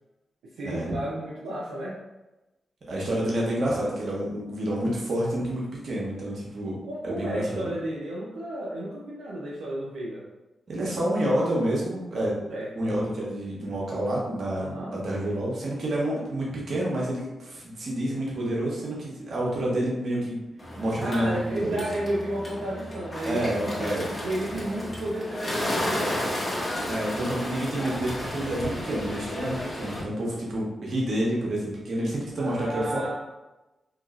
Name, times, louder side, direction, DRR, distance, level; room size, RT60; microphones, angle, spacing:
voice 1, 0.6-2.0 6.8-10.3 12.5-12.9 14.6-14.9 21.0-23.9 24.2-26.3 32.4-33.1, right 1 dB, 85° right, -7 dB, 0.5 m, -33 dB
voice 2, 2.9-6.8 7.0-7.7 10.7-12.4 12.8-20.4 20.8-21.8 23.2-24.2 26.9-33.0, right 1 dB, 65° right, -4 dB, 1.0 m, -28 dB
Bird, 20.6-30.0, left 1 dB, 30° left, 1.3 m, -33 dB
2.9 x 2.8 x 2.5 m, 1.0 s
supercardioid pair, 40°, 0 cm